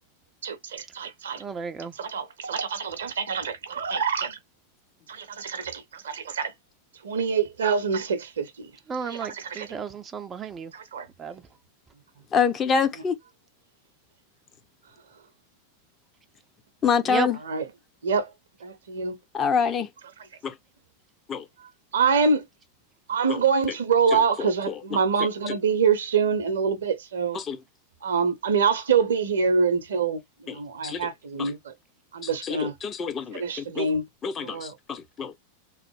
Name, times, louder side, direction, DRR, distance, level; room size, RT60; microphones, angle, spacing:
voice 1, 0.4-1.4 1.9-4.4 5.1-6.5 7.0-8.7 9.0-9.7 10.7-11.0 17.4-17.7 18.0-18.3 18.9-19.2 21.9-22.5 23.1-27.4 28.0-31.7 32.1-32.7 33.3-34.1 34.4-34.8, right 5 dB, 65° right, 0.6 m, -25 dB
voice 2, 1.4-1.9 8.9-10.7 11.2-11.3 17.1-17.3, right 5 dB, 20° right, 0.4 m, -32 dB
voice 3, 12.3-13.2 16.8-17.4 19.3-19.9 20.4-20.6 21.3-21.5 23.3-23.4 24.4-25.0 27.3-27.6 30.5-30.6 30.8-31.1 31.4-31.5 32.2-33.9 34.2-35.4, left 6 dB, 25° left, 0.6 m, -26 dB
3.1 x 2.0 x 3.0 m
figure-of-eight pair, 90°, 0 cm